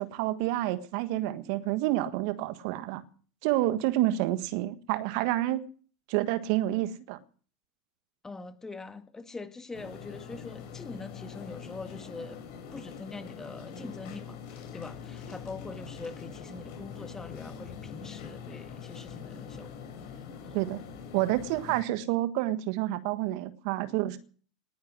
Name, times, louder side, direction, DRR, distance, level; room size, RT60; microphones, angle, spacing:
voice 1, 0.0-3.0 3.4-5.7 6.1-7.2 20.5-20.8 21.1-24.2, right 15 dB, 55° right, 1.5 m, -29 dB
voice 2, 8.2-12.4 12.7-19.8 20.4-20.6, left 3 dB, 15° left, 1.8 m, -43 dB
sound 1, 9.7-21.8, left 6 dB, 55° left, 5.3 m, -43 dB
19.0 x 10.5 x 6.2 m
hypercardioid pair, 90°, 4 cm